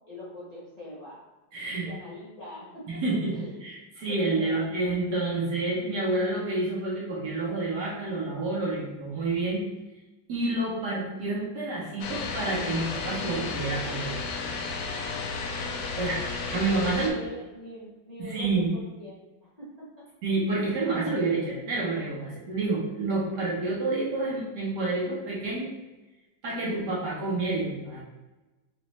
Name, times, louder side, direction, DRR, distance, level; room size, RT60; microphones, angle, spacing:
voice 1, 0.1-1.2 1.8-3.0 3.3-3.6 4.1-4.6 15.9-16.2 16.5-19.2 19.6-19.7, left 1 dB, 30° left, -9 dB, 0.7 m, -42 dB
voice 2, 1.5-1.9 2.9-9.6 10.3-14.1 16.0-16.2 16.5-17.2 18.2-18.7 20.2-25.7 26.4-28.0, right 2 dB, 60° right, -5 dB, 1.5 m, -29 dB
sound 1, 12.0-17.1, left 4 dB, 90° left, 0.8 m, -33 dB
5.1 x 2.5 x 3.2 m, 1.1 s
omnidirectional pair, 2.3 m